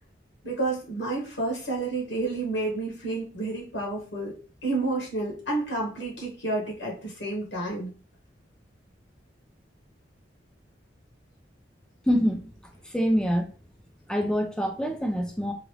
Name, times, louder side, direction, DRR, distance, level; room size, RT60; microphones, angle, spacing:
voice 1, 0.4-4.3 4.6-7.9, right 2 dB, 75° left, -3 dB, 1.1 m, -30 dB
voice 2, 12.1-12.5 12.8-13.5 14.1-15.5, equal, 5° left, 4 dB, 0.4 m, -25 dB
2.9 x 2.5 x 3.2 m, 0.39 s
head